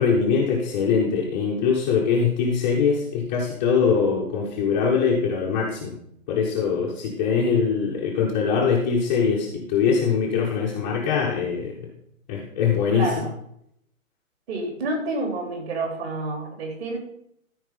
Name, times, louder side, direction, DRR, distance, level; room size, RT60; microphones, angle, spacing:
voice 1, 0.0-5.9 6.3-11.7 12.3-13.1, left 6 dB, 10° left, -5 dB, 0.5 m, -22 dB
voice 2, 12.9-13.3 14.5-17.0, right 2 dB, 50° right, 2 dB, 3.4 m, -29 dB
13.5 x 4.6 x 5.5 m, 0.73 s
hypercardioid pair, 150°, 41 cm